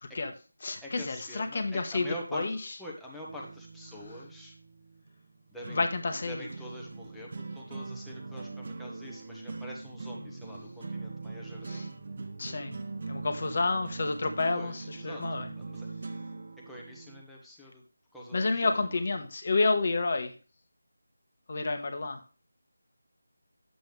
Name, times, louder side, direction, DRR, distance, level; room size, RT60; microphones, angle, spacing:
voice 1, 0.0-0.3 0.6-2.1 2.3-2.6 5.7-6.5 11.7-11.8 12.4-12.8 13.0-15.5 18.3-20.3 21.5-22.2, left 3 dB, 40° left, 7 dB, 1.3 m, -29 dB
voice 2, 0.8-4.5 5.5-5.8 6.3-11.9 14.5-15.9 16.6-17.8 18.1-19.2, equal, ahead, -5 dB, 1.2 m, -45 dB
sound 1, 3.3-17.2, right 3 dB, 40° right, 1.0 m, -42 dB
10.0 x 7.8 x 3.4 m, 0.36 s
figure-of-eight pair, 175°, 0 cm